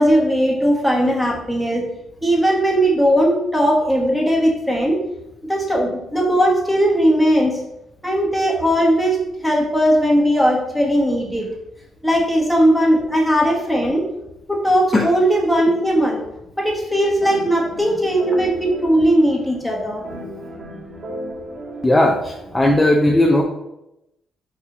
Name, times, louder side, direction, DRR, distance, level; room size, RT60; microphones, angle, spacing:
voice 1, 0.0-1.9 2.2-5.0 5.5-7.6 8.0-11.5 12.0-14.0 14.5-16.2 16.6-20.0, equal, ahead, -3 dB, 1.1 m, -18 dB
sound 1, 17.2-22.9, right 1 dB, 50° right, 1.1 m, -35 dB
voice 2, 21.8-23.4, left 1 dB, 15° left, 0 dB, 0.5 m, -16 dB
4.4 x 2.4 x 3.9 m, 0.87 s
cardioid pair, 90°, 0 cm